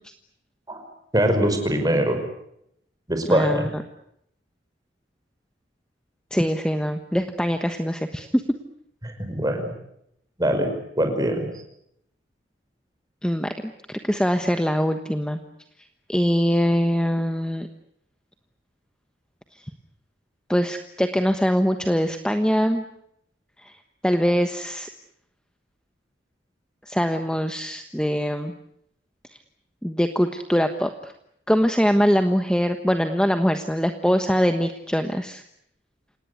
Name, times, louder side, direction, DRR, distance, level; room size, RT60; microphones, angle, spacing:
voice 1, 1.1-2.2 3.1-3.7 9.0-9.7 10.4-10.7 11.0-11.5, right 1 dB, 20° right, 6 dB, 5.5 m, -22 dB
voice 2, 3.3-3.7 6.3-8.4 13.2-13.5 13.9-15.4 16.1-17.7 20.5-22.8 23.6-23.8 24.0-24.9 26.9-28.5 29.8-31.1 31.5-35.4, equal, 5° left, 7 dB, 1.2 m, -22 dB
27.5 x 19.0 x 9.6 m, 0.75 s
head